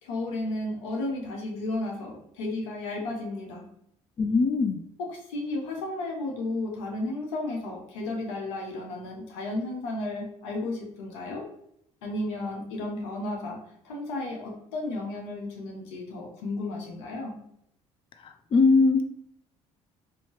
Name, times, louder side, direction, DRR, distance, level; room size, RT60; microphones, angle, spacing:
voice 1, 0.0-3.7 5.0-11.4 12.0-13.6 13.8-17.4, left 2 dB, 90° left, 1 dB, 0.9 m, -33 dB
voice 2, 4.2-4.8 18.2-19.0, left 4 dB, 35° left, 8 dB, 0.4 m, -21 dB
4.2 x 2.8 x 3.1 m, 0.72 s
hypercardioid pair, 65°, 15 cm